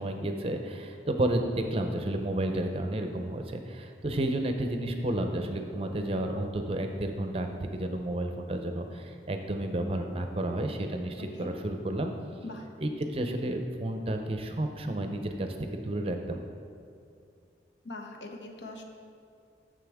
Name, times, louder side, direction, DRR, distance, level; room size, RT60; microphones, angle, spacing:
voice 1, 0.0-12.1 12.8-16.4, right 1 dB, 30° right, 5 dB, 0.5 m, -31 dB
voice 2, 11.2-11.5 12.4-12.7 17.8-18.8, left 2 dB, 75° left, 3 dB, 0.9 m, -42 dB
9.7 x 6.5 x 3.5 m, 2.4 s
head